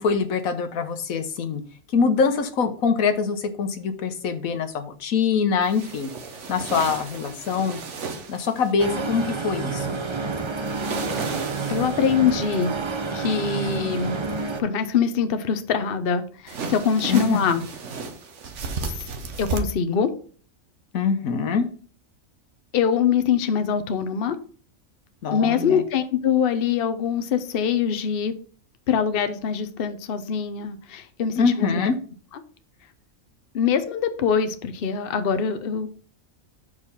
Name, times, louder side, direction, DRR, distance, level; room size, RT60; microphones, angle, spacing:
voice 1, 0.0-1.6 1.9-6.1 6.5-7.8 8.3-10.0 17.1-17.4 20.9-21.7 25.2-25.8 31.4-32.0, left 5 dB, 90° left, 8 dB, 1.4 m, -24 dB
Clothing foley FX performance, 5.6-8.7 10.7-12.2 16.5-19.6, right 4 dB, 60° right, 1.3 m, -34 dB
sound 1, 8.8-14.6, right 4 dB, 30° right, 0.6 m, -29 dB
voice 2, 11.7-12.7 13.1-17.6 19.4-20.1 22.7-24.4 25.3-28.3 28.9-31.8 33.5-35.9, left 7 dB, 50° left, 9 dB, 0.9 m, -23 dB
6.6 x 4.9 x 5.5 m, 0.43 s
omnidirectional pair, 1.4 m